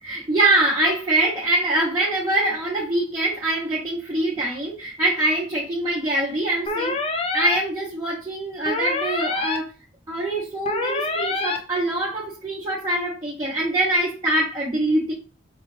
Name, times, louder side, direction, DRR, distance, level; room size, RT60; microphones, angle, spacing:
voice 1, 0.0-7.0 7.3-9.7 10.1-15.1, right 1 dB, 20° right, 0.7 m, -24 dB
sound 1, 6.7-7.6 8.7-9.6 10.7-11.6, left 3 dB, 30° left, 0.4 m, -25 dB
4.4 x 2.3 x 3.2 m
head